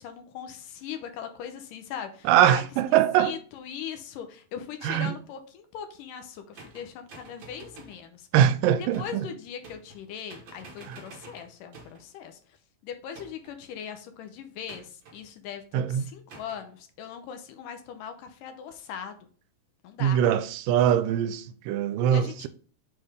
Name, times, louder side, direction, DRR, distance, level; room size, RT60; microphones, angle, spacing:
voice 1, 0.0-2.6 2.9-8.3 8.8-12.4 12.8-19.2 19.8-20.2 22.1-22.5, left 8 dB, 80° left, 2.3 m, -40 dB
voice 2, 2.3-3.3 4.8-5.1 8.3-9.3 10.9-11.0 15.7-16.0 20.0-22.5, right 10 dB, 85° right, 2.2 m, -22 dB
sound 1, 6.5-8.0 8.9-9.2 9.6-10.0 10.3-12.1 13.1-13.6 14.7-15.2 16.3-16.6, right 3 dB, 55° right, 1.4 m, -49 dB
6.6 x 5.4 x 3.4 m
omnidirectional pair, 4.0 m